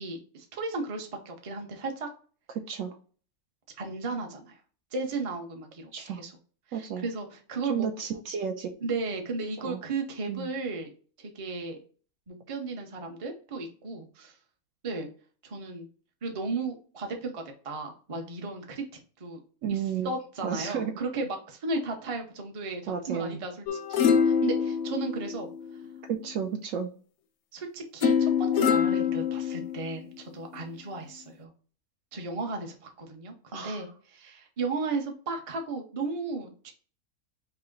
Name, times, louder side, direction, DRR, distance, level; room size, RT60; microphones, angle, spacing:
voice 1, 0.0-2.1 3.8-4.6 4.9-6.3 6.7-7.9 8.8-10.9 11.2-11.8 12.3-14.4 14.8-15.1 15.4-15.9 16.2-18.8 19.2-19.4 19.7-25.5 27.5-31.5 32.1-36.7, right 3 dB, 35° right, 3 dB, 0.6 m, -35 dB
voice 2, 6.7-7.1 7.7-8.7 9.6-9.8 10.3-10.5 19.6-20.1 20.4-20.9 22.9-23.4 26.0-26.9 33.5-33.8, right 7 dB, 70° right, 6 dB, 0.9 m, -32 dB
sound 1, 23.7-26.0 28.0-30.0 30.6-30.7, left 7 dB, 65° left, 0.7 m, -25 dB
5.7 x 2.1 x 3.8 m, 0.40 s
omnidirectional pair, 1.5 m